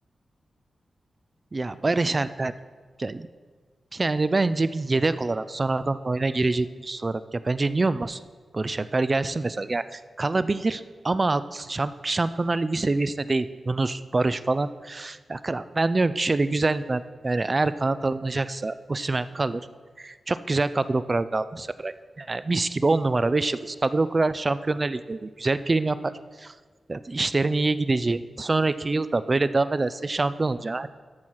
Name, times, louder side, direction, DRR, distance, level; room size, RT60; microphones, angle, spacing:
voice 1, 1.5-2.5 3.0-3.3 3.9-8.2 8.5-19.6 20.0-26.1 26.4-26.5 26.9-30.9, right 3 dB, 30° right, 14 dB, 0.3 m, -25 dB
13.5 x 5.6 x 4.6 m, 1.5 s
wide cardioid pair, 140°, 0 cm